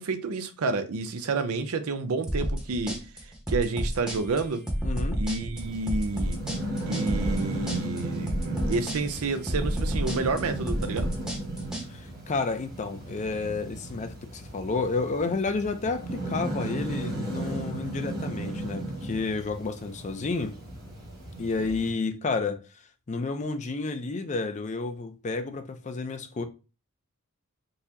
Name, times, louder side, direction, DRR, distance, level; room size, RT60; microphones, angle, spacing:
voice 1, 0.0-3.0 3.2-4.6 5.1-6.4 6.9-11.1 21.3-21.5, right 3 dB, 70° right, 0.5 m, -30 dB
sound 1, 2.3-11.9, equal, 5° right, 0.8 m, -30 dB
voice 2, 4.8-5.2 11.9-20.5 21.4-22.6 23.1-26.4, left 3 dB, 35° left, 0.5 m, -31 dB
sound 2, 5.6-21.9, right 1 dB, 45° right, 1.6 m, -35 dB
4.0 x 2.8 x 2.6 m
head